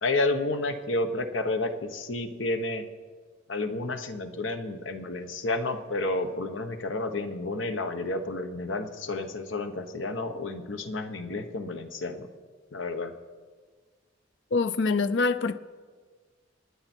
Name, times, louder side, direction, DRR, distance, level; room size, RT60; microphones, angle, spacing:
voice 1, 0.0-2.8 3.5-12.3 12.7-13.1, left 2 dB, 85° left, 7 dB, 1.2 m, -30 dB
voice 2, 14.5-15.6, left 4 dB, 65° left, 12 dB, 0.5 m, -25 dB
27.0 x 9.6 x 4.5 m, 1.5 s
head